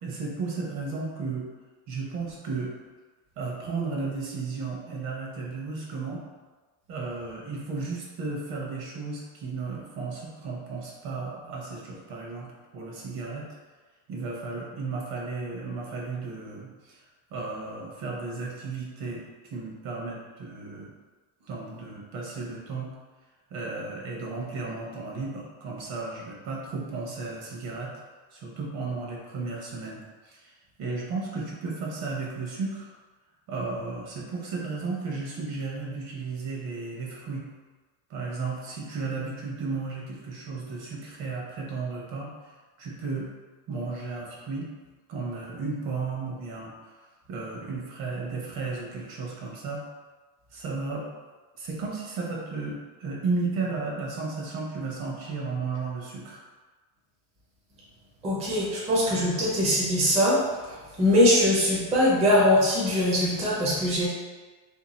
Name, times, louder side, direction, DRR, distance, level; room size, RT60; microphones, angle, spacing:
voice 1, 0.0-1.5 1.9-2.7 3.4-6.2 6.9-12.5 12.7-13.5 14.1-17.0 17.3-19.2 19.5-20.9 21.4-22.9 23.5-27.9 28.3-30.5 30.8-32.9 33.5-37.4 38.1-42.3 42.8-43.3 43.7-44.7 45.1-46.7 47.3-49.8 50.5-51.1 51.6-56.4, right 4 dB, 55° right, -2 dB, 1.0 m, -34 dB
voice 2, 58.2-60.5 61.0-64.1, left 1 dB, 15° right, -7 dB, 0.5 m, -22 dB
2.9 x 2.5 x 4.0 m, 1.3 s
cardioid pair, 160°, 46 cm